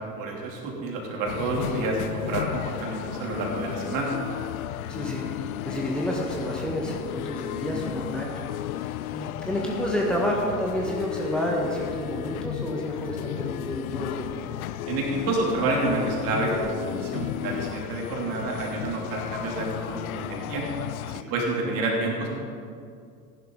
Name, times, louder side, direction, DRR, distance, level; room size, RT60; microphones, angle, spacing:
voice 1, 0.1-4.1 14.9-20.6 21.0-22.3, right 2 dB, 45° right, -1 dB, 3.1 m, -29 dB
sound 1, 1.3-21.2, left 14 dB, 65° left, 0.5 m, -34 dB
voice 2, 4.9-14.3 21.3-21.4, equal, ahead, -3 dB, 1.6 m, -30 dB
14.5 x 11.5 x 3.9 m, 2.3 s
figure-of-eight pair, 75°, 46 cm